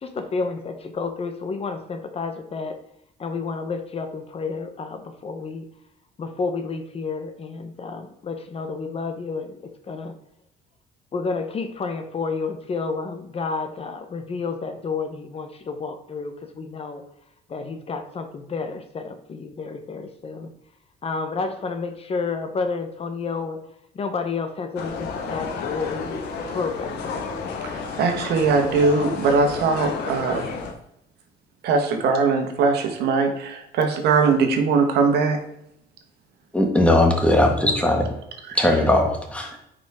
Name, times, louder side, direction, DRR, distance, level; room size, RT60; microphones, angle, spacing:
voice 1, 0.0-2.7 3.2-5.6 6.2-9.6 9.9-10.1 11.1-17.0 17.5-20.5 21.0-23.6 23.9-26.1 26.5-27.4, left 4 dB, 35° left, 7 dB, 1.0 m, -30 dB
sound 1, 24.8-30.7, left 5 dB, 85° left, 1.4 m, -31 dB
voice 2, 28.0-30.5 31.6-35.4, right 4 dB, 75° right, 4 dB, 1.5 m, -20 dB
voice 3, 36.5-38.1 38.6-39.6, left 1 dB, 5° left, 2 dB, 1.7 m, -19 dB
9.0 x 5.2 x 3.6 m, 0.79 s
cardioid pair, 110°, 17 cm